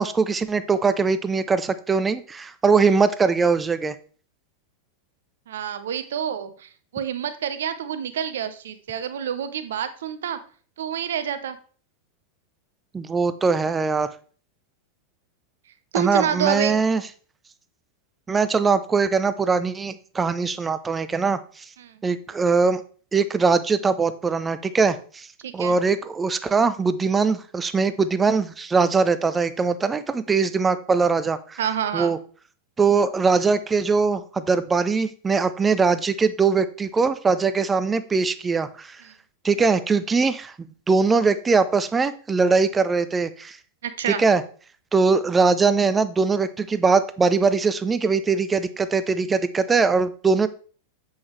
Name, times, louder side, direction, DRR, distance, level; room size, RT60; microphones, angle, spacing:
voice 1, 0.0-4.0 12.9-14.1 15.9-17.0 18.3-21.6 22.0-22.8 23.1-25.3 25.5-31.6 31.9-32.2 32.8-39.0 39.4-40.5 40.9-43.6 44.1-44.4 44.9-50.5, right 4 dB, 15° right, 13 dB, 0.5 m, -21 dB
voice 2, 5.5-10.4 10.8-11.6 15.9-16.7 21.8-21.9 25.4-25.7 31.6-32.1 43.8-44.2, right 8 dB, 60° right, 11 dB, 0.7 m, -28 dB
7.7 x 5.5 x 3.2 m, 0.42 s
figure-of-eight pair, 90°, 0 cm